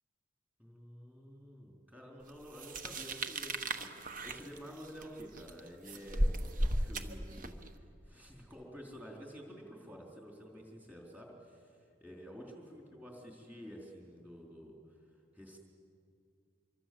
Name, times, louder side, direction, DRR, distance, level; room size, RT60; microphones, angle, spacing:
voice 1, 0.6-15.0 15.3-15.6, equal, 10° right, -1 dB, 4.0 m, -50 dB
sound 1, 2.5-7.7, right 1 dB, 40° right, 1.2 m, -35 dB
25.5 x 24.0 x 7.8 m, 2.4 s
head